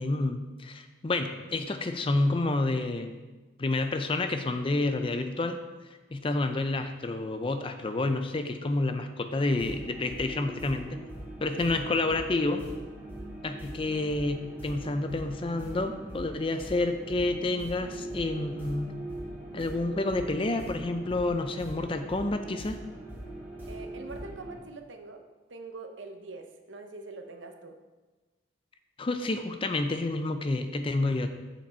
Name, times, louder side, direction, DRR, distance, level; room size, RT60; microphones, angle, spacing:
voice 1, 0.0-3.2 3.6-5.6 6.1-11.0 11.4-12.6 13.4-19.0 19.5-22.8 29.0-31.3, left 2 dB, 30° left, 7 dB, 0.4 m, -29 dB
sound 1, 9.5-24.6, right 1 dB, 10° right, 2.1 m, -41 dB
voice 2, 23.7-25.2 25.5-27.8, right 3 dB, 80° right, 6 dB, 0.8 m, -44 dB
7.0 x 6.0 x 4.3 m, 1.2 s
head